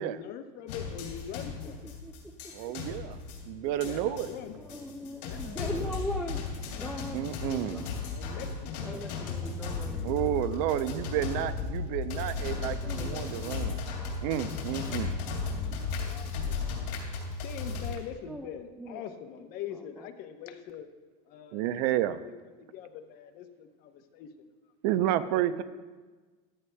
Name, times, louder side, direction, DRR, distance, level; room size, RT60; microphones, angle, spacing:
voice 1, 0.0-1.9 3.6-4.7 5.0-5.9 7.2-7.3 8.1-9.2 9.8-10.1 14.8-15.0 16.1-16.7 17.4-20.9 21.2-24.5 25.2-25.5, left 9 dB, 45° left, 8 dB, 0.8 m, -44 dB
sound 1, 0.7-17.9, left 5 dB, 90° left, 2.7 m, -35 dB
voice 2, 2.5-3.2 3.5-4.3 7.1-7.9 10.0-13.8 14.2-15.1 21.5-22.2 24.8-25.6, right 12 dB, 60° right, 13 dB, 0.5 m, -30 dB
voice 3, 4.6-6.4 6.8-7.9 8.8-10.1 10.6-11.2 12.8-13.7 18.3-18.5 18.8-19.0 20.0-20.1, equal, ahead, 2 dB, 0.3 m, -40 dB
14.5 x 11.0 x 2.2 m, 1.3 s
supercardioid pair, 155°, 21 cm